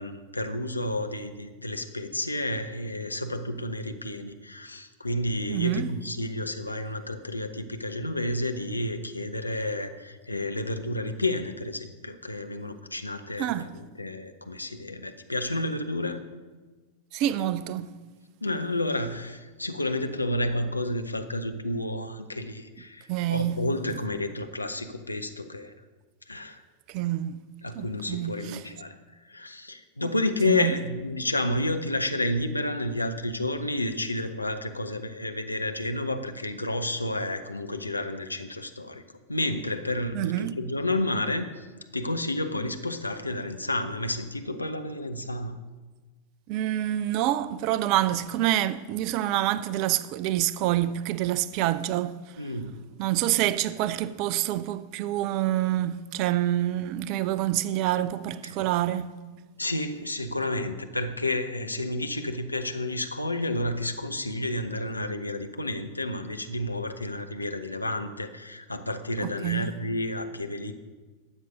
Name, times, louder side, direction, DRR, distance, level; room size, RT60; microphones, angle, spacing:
voice 1, 0.0-16.2 18.4-25.7 26.3-26.6 27.6-29.0 29.2-39.0 39.3-41.7 41.9-45.6 52.4-52.8 58.4-58.5 59.6-70.7, left 1 dB, 85° left, 0.8 m, -30 dB
voice 2, 5.5-5.9 13.4-13.7 17.1-17.9 23.1-23.6 26.9-27.4 27.7-28.6 30.5-30.8 40.1-40.5 46.5-52.2 53.0-59.1 69.2-69.7, right 13 dB, 45° right, 0.5 m, -27 dB
12.5 x 8.3 x 5.2 m
figure-of-eight pair, 90°, 0 cm